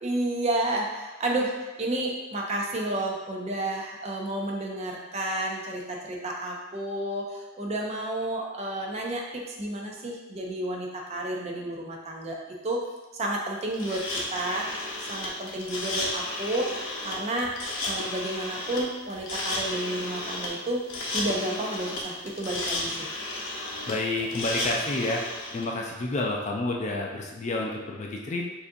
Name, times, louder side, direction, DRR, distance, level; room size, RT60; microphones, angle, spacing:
voice 1, 0.0-12.4 12.6-12.8 13.2-14.0 14.3-17.5 17.8-20.8 21.1-23.1, right 1 dB, 30° right, -1 dB, 0.5 m, -31 dB
sound 1, 13.7-25.6, left 2 dB, 70° left, 0.8 m, -33 dB
voice 2, 23.9-25.2 25.5-28.4, left 2 dB, 35° left, 0 dB, 0.4 m, -29 dB
4.9 x 2.6 x 2.6 m, 1.1 s
head